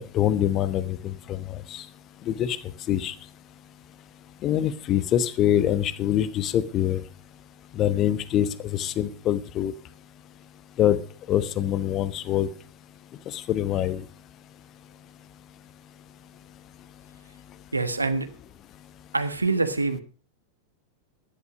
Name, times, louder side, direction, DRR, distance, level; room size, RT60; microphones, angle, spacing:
voice 1, 0.0-1.8 2.3-2.6 2.9-3.1 4.4-7.0 7.7-9.7 10.8-11.0 11.3-12.5 13.3-14.0, left 11 dB, 35° left, 15 dB, 1.2 m, -25 dB
voice 2, 17.7-18.3 19.1-20.0, right 3 dB, 80° right, 10 dB, 1.4 m, -25 dB
15.5 x 11.0 x 5.3 m, 0.38 s
figure-of-eight pair, 90°, 0 cm